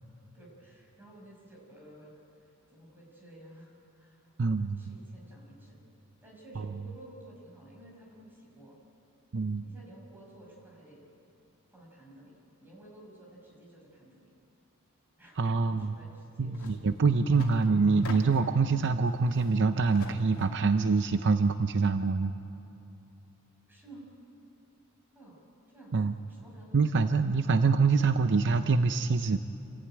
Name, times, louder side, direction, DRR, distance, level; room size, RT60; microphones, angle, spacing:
voice 1, 0.3-5.8 6.2-8.8 9.6-11.1 11.7-14.2 15.2-16.9 23.7-24.1 25.1-25.4 25.7-27.1, right 1 dB, 10° right, -3 dB, 6.2 m, -53 dB
voice 2, 4.4-4.9 9.3-9.6 15.4-15.9 16.4-22.3 25.9-26.1 26.7-29.4, right 4 dB, 55° right, 9 dB, 0.6 m, -25 dB
sound 1, 16.5-16.8 17.1-18.6 19.1-20.7, left 2 dB, 85° left, 2.4 m, -44 dB
27.5 x 14.5 x 9.0 m, 2.8 s
head